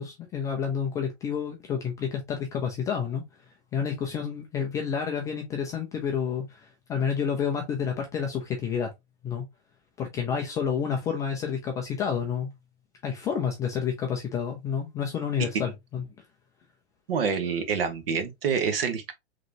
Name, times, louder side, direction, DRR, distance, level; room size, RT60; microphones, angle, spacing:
voice 1, 0.0-3.2 3.7-8.9 9.2-9.4 10.0-12.5 13.0-16.0, left 7 dB, 10° left, 0.3 m, -29 dB
voice 2, 17.1-19.1, right 6 dB, 55° right, 1.4 m, -27 dB
4.9 x 3.1 x 2.8 m
hypercardioid pair, 120°, 33 cm